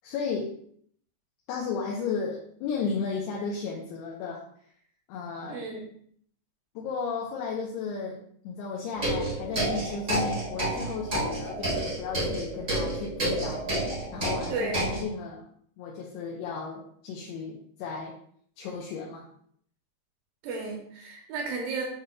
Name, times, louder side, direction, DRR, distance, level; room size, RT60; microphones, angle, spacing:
voice 1, 0.0-0.5 1.5-4.4 5.1-5.6 6.8-13.6 14.1-15.4 15.8-18.2 18.6-19.3, left 5 dB, 80° left, -3 dB, 2.6 m, -34 dB
voice 2, 5.5-5.9 14.5-14.9 20.4-21.8, right 3 dB, 70° right, 0 dB, 2.4 m, -33 dB
sound 1, 8.9-15.0, right 1 dB, 50° right, 0.9 m, -30 dB
8.3 x 5.0 x 2.3 m, 0.62 s
omnidirectional pair, 5.1 m